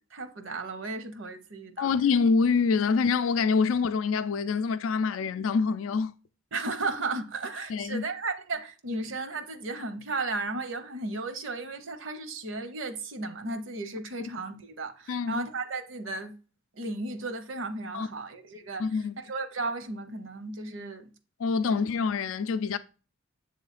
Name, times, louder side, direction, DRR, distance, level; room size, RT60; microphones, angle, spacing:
voice 1, 0.1-1.9 6.5-16.3 16.8-21.1 21.7-21.8, right 3 dB, 70° right, 0.8 m, -35 dB
voice 2, 1.8-6.1 7.7-8.1 15.1-15.4 17.9-18.1 18.8-19.1 21.4-22.8, left 5 dB, 90° left, 0.4 m, -26 dB
7.6 x 3.2 x 4.0 m
head